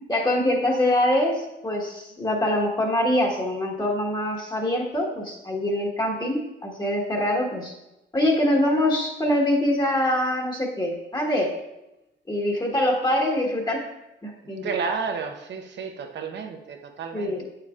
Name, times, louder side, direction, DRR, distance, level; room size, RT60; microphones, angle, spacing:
voice 1, 0.0-7.7 8.1-11.5 12.3-13.9 14.2-14.8 17.1-17.5, left 1 dB, 20° left, -1 dB, 1.4 m, -24 dB
voice 2, 14.6-17.5, right 5 dB, 60° right, 5 dB, 0.9 m, -31 dB
8.5 x 6.7 x 2.4 m, 0.92 s
cardioid pair, 90°, 20 cm